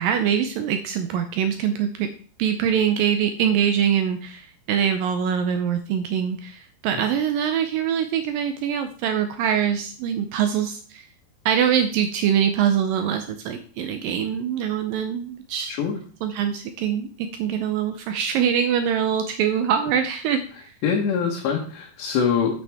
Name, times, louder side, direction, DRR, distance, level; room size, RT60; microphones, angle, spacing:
voice 1, 0.0-2.1 2.4-11.1 11.5-15.8 16.2-20.7, right 8 dB, 90° right, 7 dB, 2.0 m, -23 dB
voice 2, 15.7-16.0 20.8-22.6, left 6 dB, 90° left, -1 dB, 3.5 m, -24 dB
9.0 x 8.1 x 3.5 m, 0.43 s
omnidirectional pair, 4.8 m